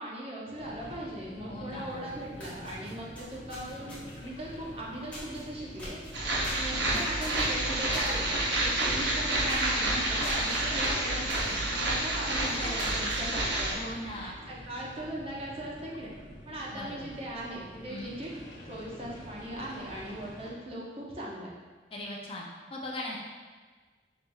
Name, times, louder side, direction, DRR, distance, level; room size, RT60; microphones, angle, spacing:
voice 1, 0.0-6.0 6.5-8.3 8.6-16.1 16.5-18.3 18.7-21.5, right 1 dB, 35° right, -5 dB, 0.7 m, -39 dB
sound 1, 0.5-20.5, equal, 90° left, 1.1 m, -47 dB
voice 2, 1.5-2.0 6.7-7.0 12.4-12.9 13.7-14.3 16.7-17.1 17.9-18.1 21.9-22.4 22.7-23.2, left 1 dB, 30° left, -2 dB, 0.4 m, -39 dB
sound 2, 1.9-2.0 2.3-4.3 5.1-5.4 5.8-8.1 8.5-8.7 9.0-9.1 9.4-9.7 10.2-10.6 11.3-11.5 12.0-12.1 12.6-13.2, left 1 dB, 5° left, 0.9 m, -44 dB
sound 3, 6.1-13.7, right 1 dB, 75° right, 0.7 m, -29 dB
5.4 x 3.0 x 2.3 m, 1.4 s
head